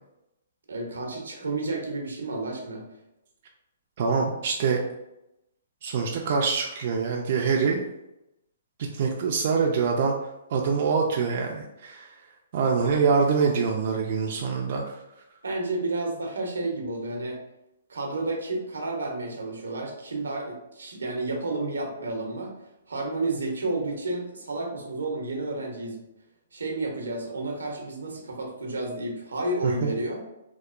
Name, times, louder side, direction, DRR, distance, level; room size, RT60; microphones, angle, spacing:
voice 1, 0.7-2.8 15.4-17.4 17.9-22.5 22.9-26.0 26.5-30.2, right 2 dB, 90° right, 1 dB, 0.7 m, -31 dB
voice 2, 4.0-4.8 5.8-7.8 8.8-10.1 10.5-12.1 12.5-14.8 29.6-29.9, right 5 dB, 50° right, -1 dB, 0.3 m, -24 dB
2.8 x 2.1 x 2.4 m, 0.90 s
hypercardioid pair, 140°, 0 cm